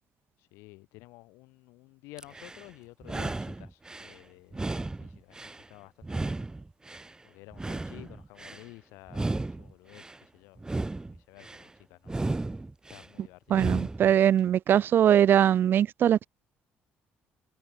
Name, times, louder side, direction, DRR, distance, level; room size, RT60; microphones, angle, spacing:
voice 1, 0.4-6.4 7.2-9.3 9.6-12.1 12.9-13.7, left 23 dB, 85° left, 2.9 m, -52 dB
sound 1, 2.2-2.7 3.0-4.1 4.5-5.7 6.0-7.1 7.5-8.6 9.1-10.2 10.6-11.6 12.1-13.1 13.5-14.1, right 2 dB, 15° right, 2.3 m, -34 dB
voice 2, 13.5-16.3, right 10 dB, 55° right, 0.4 m, -21 dB
supercardioid pair, 80°, 4 cm